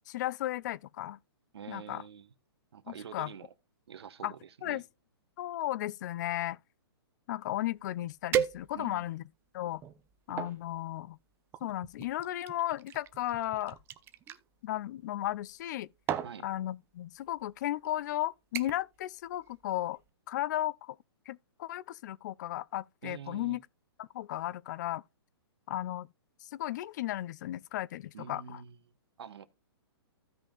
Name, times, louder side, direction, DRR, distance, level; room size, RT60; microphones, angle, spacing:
voice 1, 0.1-1.2 1.7-2.0 2.9-3.3 4.2-4.3 4.6-4.8 5.4-6.6 7.3-9.2 9.5-9.8 10.3-11.2 11.6-13.8 14.6-15.9 16.4-20.0 20.3-21.0 21.3-23.6 24.0-25.0 25.7-26.1 26.4-28.6, left 14 dB, 45° left, 0.4 m, -35 dB
voice 2, 1.5-2.3 2.7-3.5 3.9-4.8 8.7-9.2 16.2-16.5 23.0-23.6 28.1-28.8 29.2-29.5, right 8 dB, 75° right, 1.1 m, -46 dB
sound 1, 7.7-7.8 8.3-9.1 9.7-10.6 11.5-14.4 15.5-15.7 16.1-16.4 17.3-17.4 17.8-18.1 18.5-19.0 19.3-19.6 20.0-20.1, right 10 dB, 15° right, 0.5 m, -36 dB
15.5 x 5.3 x 2.3 m
hypercardioid pair, 140°, 14 cm